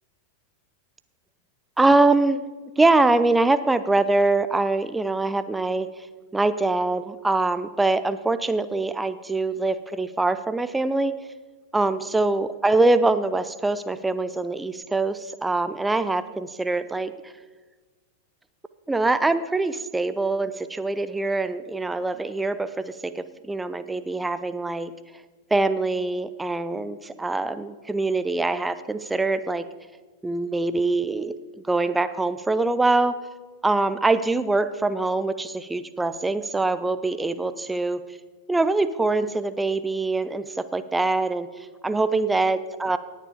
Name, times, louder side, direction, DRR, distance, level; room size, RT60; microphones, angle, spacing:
voice 1, 1.8-2.4 2.8-5.9 6.3-11.1 11.7-17.1 18.9-24.9 25.5-29.7 30.2-31.4 31.7-33.1 33.6-38.0 38.5-41.5 41.8-43.0, right 2 dB, 10° right, 12 dB, 0.5 m, -23 dB
18.5 x 7.4 x 5.0 m, 1.3 s
figure-of-eight pair, 90°, 0 cm